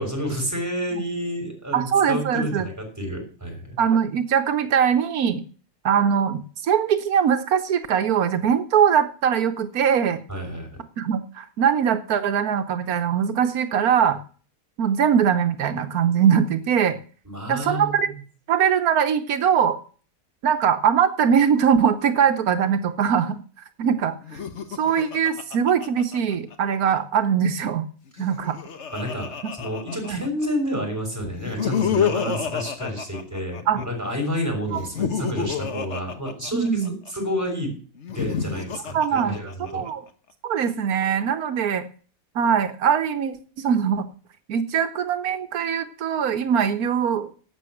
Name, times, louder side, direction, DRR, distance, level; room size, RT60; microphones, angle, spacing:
voice 1, 0.0-3.8 10.3-10.7 17.2-18.2 28.1-28.2 28.9-37.7 38.1-39.9, equal, 10° right, 1 dB, 5.9 m, -30 dB
voice 2, 1.7-2.7 3.8-5.4 5.8-10.2 11.0-14.2 14.8-17.0 17.5-18.1 18.5-19.8 20.4-23.4 23.8-24.4 24.8-27.9 28.2-28.6 30.0-30.2 33.7-33.8 34.7-34.8 36.5-37.0 38.9-39.4 39.7-40.0 40.4-41.8 42.3-44.1 44.5-47.3, right 8 dB, 85° right, 9 dB, 1.4 m, -21 dB
Laughter, 24.2-26.8 28.1-30.5 31.3-33.9 34.7-37.1 38.0-39.9, left 7 dB, 55° left, 1.4 m, -29 dB
12.0 x 8.5 x 7.8 m, 0.41 s
omnidirectional pair, 1.5 m